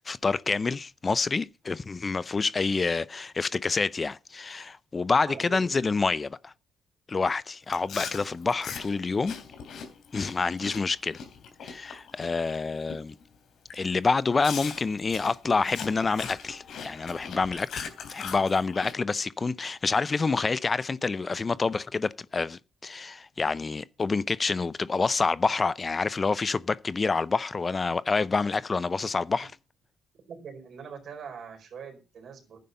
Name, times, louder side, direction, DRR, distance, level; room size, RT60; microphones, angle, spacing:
voice 1, 0.0-6.5 7.1-9.3 10.1-11.2 11.6-13.1 13.7-29.5, left 4 dB, 30° left, 0.5 m, -27 dB
voice 2, 5.2-5.7 8.0-8.1 29.4-29.5 30.3-32.6, right 6 dB, 60° right, 4.6 m, -42 dB
Chewing mastication, 7.7-12.5 12.9-13.2 13.7-13.8 14.4-18.9, left 6 dB, 70° left, 3.4 m, -40 dB
11.0 x 9.2 x 5.4 m
cardioid pair, 90°, 0 cm